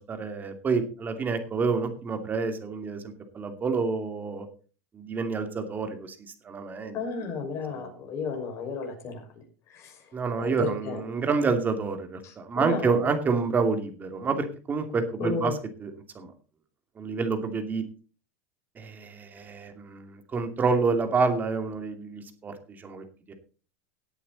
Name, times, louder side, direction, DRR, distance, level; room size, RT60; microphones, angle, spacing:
voice 1, 0.1-3.0 3.3-4.5 4.9-6.2 6.4-6.9 10.1-15.5 15.8-15.9 16.1-16.3 17.0-17.8 18.8-23.3, right 4 dB, 20° right, 7 dB, 2.6 m, -28 dB
voice 2, 6.9-9.2 9.7-10.1 10.4-11.0 12.2-13.1 15.2-15.6, left 5 dB, 35° left, 3 dB, 5.9 m, -33 dB
18.0 x 8.5 x 4.1 m, 0.37 s
supercardioid pair, 135°, 8 cm